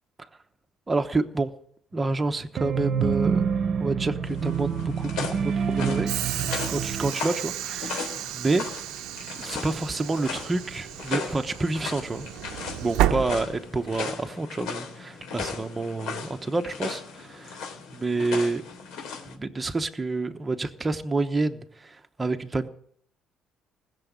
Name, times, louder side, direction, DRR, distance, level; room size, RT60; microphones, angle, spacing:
voice 1, 0.9-1.5 1.9-3.5 3.8-6.1 6.7-8.6 9.4-12.3 12.8-17.6 17.9-18.6 19.3-22.7, right 3 dB, 15° right, 1.0 m, -28 dB
sound 1, 2.6-7.1, right 6 dB, 40° right, 1.0 m, -27 dB
sound 2, 4.2-19.4, left 5 dB, 80° left, 3.5 m, -37 dB
Train / Sliding door, 6.1-14.0, right 13 dB, 90° right, 0.7 m, -32 dB
19.5 x 7.1 x 9.5 m
cardioid pair, 160°, 0 cm